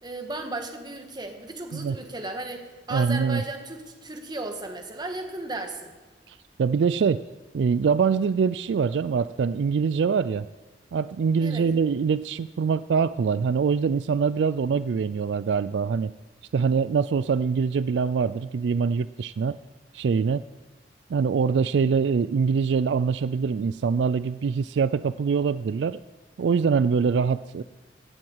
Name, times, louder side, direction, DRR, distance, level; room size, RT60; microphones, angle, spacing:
voice 1, 0.0-5.9 11.4-11.7, right 2 dB, 25° right, 5 dB, 1.7 m, -35 dB
voice 2, 2.9-3.4 6.3-7.3 7.5-10.5 10.9-16.1 16.5-19.6 19.9-20.4 21.1-26.0 26.4-27.6, right 5 dB, 75° right, 16 dB, 0.3 m, -24 dB
15.5 x 7.6 x 8.0 m, 1.2 s
head